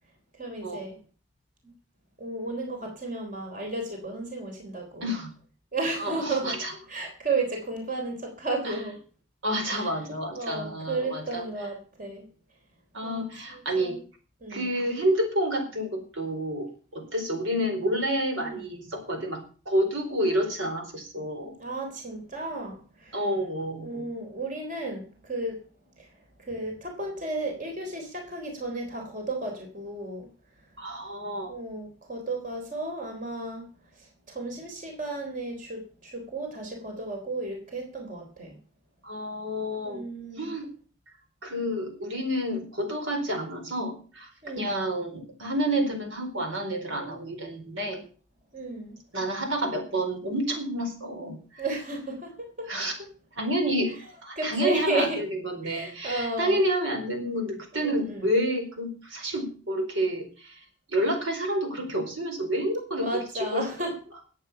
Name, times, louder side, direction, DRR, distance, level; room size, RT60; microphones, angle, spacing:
voice 1, 0.4-0.9 2.2-5.2 5.7-6.6 6.9-9.0 9.6-9.9 10.3-12.2 13.0-14.0 14.4-14.7 18.4-18.7 21.6-23.2 23.8-25.6 26.4-30.3 31.5-33.7 34.3-38.6 39.8-40.5 44.4-44.7 48.5-49.0 51.6-52.7 54.4-55.2 55.6-56.6 57.8-58.3 63.0-63.9, right 2 dB, 40° right, 2 dB, 3.7 m, -33 dB
voice 2, 6.0-6.7 8.6-8.8 9.4-11.4 12.9-13.9 14.5-19.4 19.7-21.6 23.1-24.0 30.8-31.5 39.0-40.0 40.4-40.7 41.4-44.3 44.6-48.0 49.1-51.6 52.7-52.9 53.3-53.9 54.2-60.6 60.9-63.7, equal, 75° right, 4 dB, 4.5 m, -29 dB
20.5 x 8.4 x 5.7 m, 0.40 s
head